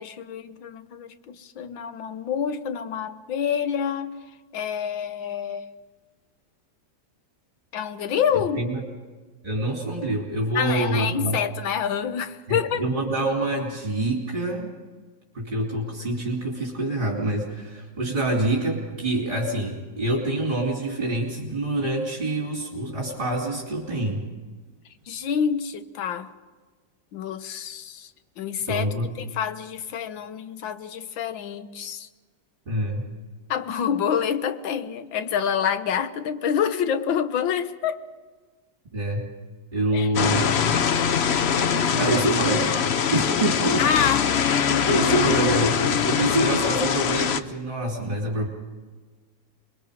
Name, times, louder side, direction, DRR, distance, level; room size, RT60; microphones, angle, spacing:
voice 1, 0.0-4.2 4.5-5.7 7.7-8.6 10.5-12.8 25.1-26.3 27.1-28.1 28.4-28.8 29.2-32.1 33.5-38.0 39.9-40.1 43.8-44.3 44.7-44.9, left 8 dB, 90° left, 11 dB, 1.8 m, -27 dB
voice 2, 8.3-8.8 9.4-11.4 12.5-14.7 15.3-24.3 28.7-29.1 32.7-33.1 38.9-39.3 39.7-40.8 41.9-43.9 44.9-48.5, right 1 dB, 25° right, -3 dB, 3.4 m, -26 dB
sound 1, 40.1-47.4, left 7 dB, 65° left, 0.6 m, -23 dB
27.0 x 21.5 x 5.1 m, 1.4 s
omnidirectional pair, 2.0 m